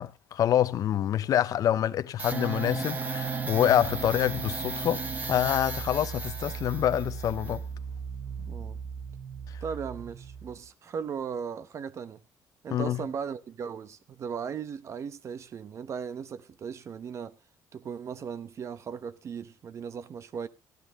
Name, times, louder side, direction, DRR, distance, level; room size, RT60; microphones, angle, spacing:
voice 1, 0.0-7.6 8.4-8.5 9.5-9.6 12.7-13.0, left 11 dB, 50° left, 0.8 m, -26 dB
sound 1, 2.2-10.6, right 5 dB, 25° right, 1.4 m, -35 dB
voice 2, 8.5-8.8 9.6-12.2 12.6-17.4 17.7-20.5, right 7 dB, 40° right, 0.9 m, -37 dB
14.5 x 12.0 x 3.7 m
cardioid pair, 145°, 8 cm